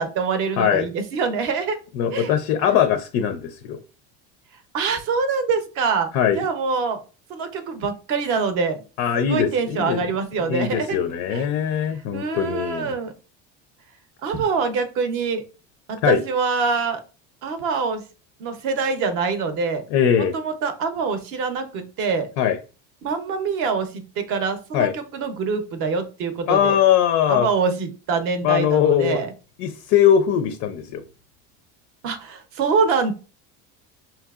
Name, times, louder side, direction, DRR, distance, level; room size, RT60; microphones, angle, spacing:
voice 1, 0.0-1.8 2.1-2.3 4.7-7.0 7.3-8.8 9.1-11.0 11.3-11.5 12.1-13.1 14.2-15.4 15.9-17.0 17.4-18.0 18.4-19.8 20.2-22.3 23.0-26.8 27.3-29.3 32.0-33.1, right 5 dB, 40° right, 0.6 m, -25 dB
voice 2, 0.6-0.9 2.0-3.8 6.1-6.4 9.0-10.0 10.5-12.9 16.0-16.2 19.9-20.3 22.4-22.6 24.7-24.9 26.5-27.5 28.4-29.2 29.6-31.0, left 9 dB, 45° left, 0.4 m, -20 dB
5.6 x 2.7 x 2.3 m
cardioid pair, 175°, 33 cm